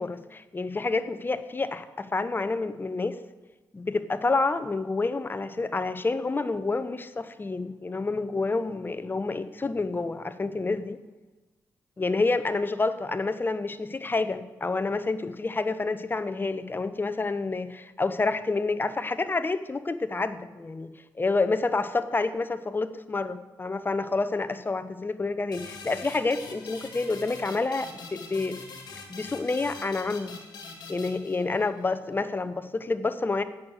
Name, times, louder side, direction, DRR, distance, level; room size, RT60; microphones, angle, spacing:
voice 1, 0.0-3.2 3.7-11.0 12.0-20.9 21.2-28.6 29.1-30.3 30.9-33.4, left 3 dB, 25° left, 11 dB, 0.8 m, -28 dB
sound 1, 25.5-31.9, left 4 dB, 65° left, 2.0 m, -44 dB
8.6 x 6.5 x 7.9 m, 1.2 s
supercardioid pair, 55°, 8 cm